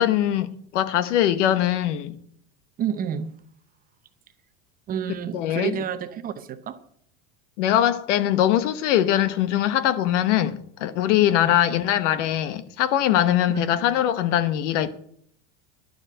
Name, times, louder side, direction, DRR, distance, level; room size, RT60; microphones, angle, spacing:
voice 1, 0.0-2.2 5.3-5.8 7.6-15.0, left 11 dB, 75° left, 1.1 m, -22 dB
voice 2, 2.8-3.3 4.9-6.8 11.3-11.6 13.5-13.7, right 8 dB, 25° right, 0.7 m, -30 dB
11.5 x 7.3 x 7.8 m
supercardioid pair, 150°, 37 cm